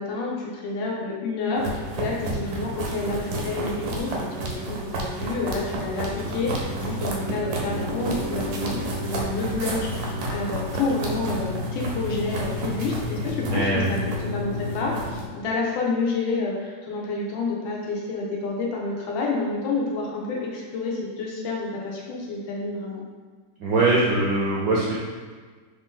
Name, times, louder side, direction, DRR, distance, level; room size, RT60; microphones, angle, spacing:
voice 1, 0.0-23.0, left 3 dB, 85° left, -3 dB, 1.4 m, -29 dB
sound 1, 1.6-15.2, right 1 dB, 85° right, 1.4 m, -30 dB
voice 2, 13.5-13.9 23.6-25.0, right 2 dB, 70° right, -5 dB, 0.9 m, -22 dB
3.9 x 2.6 x 3.7 m, 1.5 s
omnidirectional pair, 2.0 m